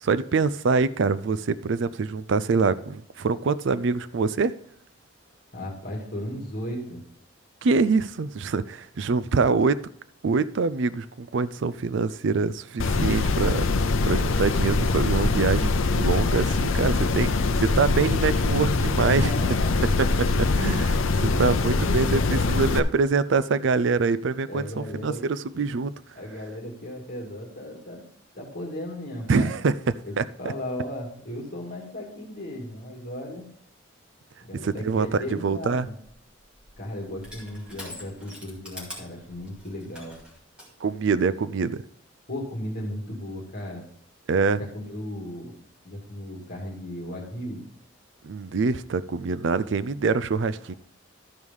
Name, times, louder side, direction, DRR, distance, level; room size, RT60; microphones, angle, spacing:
voice 1, 0.0-4.5 7.6-9.8 10.2-13.6 14.0-19.3 20.0-25.9 29.3-29.7 30.2-30.3 34.6-35.9 40.8-41.8 44.3-44.6 48.2-50.7, right 4 dB, 60° right, 0.4 m, -25 dB
voice 2, 5.5-7.0 19.1-19.9 21.1-22.6 24.5-25.2 26.1-28.0 28.3-29.5 30.0-33.5 34.4-35.9 36.8-40.2 42.3-43.9 44.7-45.5 45.8-47.6 50.7-50.8, left 1 dB, 45° left, 2.3 m, -35 dB
sound 1, 12.8-22.8, left 3 dB, 75° left, 0.6 m, -23 dB
Crushing, 36.4-40.7, left 1 dB, 5° right, 2.2 m, -45 dB
12.5 x 4.8 x 5.4 m
head